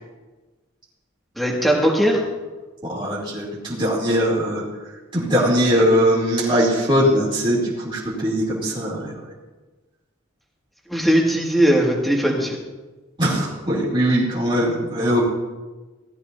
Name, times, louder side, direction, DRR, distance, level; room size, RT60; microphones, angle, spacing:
voice 1, 1.4-2.2 10.9-12.6, equal, ahead, -2 dB, 2.0 m, -19 dB
voice 2, 2.8-4.6 5.1-9.1 13.2-15.2, equal, 25° right, -7 dB, 2.8 m, -20 dB
17.5 x 13.0 x 2.7 m, 1.2 s
head